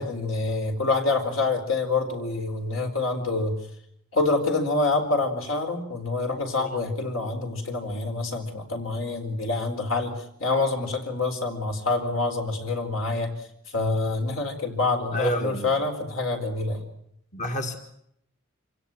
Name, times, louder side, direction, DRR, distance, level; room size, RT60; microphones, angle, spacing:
voice 1, 0.0-3.6 4.1-13.3 13.7-16.8, left 3 dB, 70° left, 4 dB, 4.3 m, -26 dB
voice 2, 15.1-15.7 17.3-17.8, equal, 35° left, 5 dB, 1.7 m, -29 dB
26.5 x 17.0 x 9.1 m, 0.74 s
head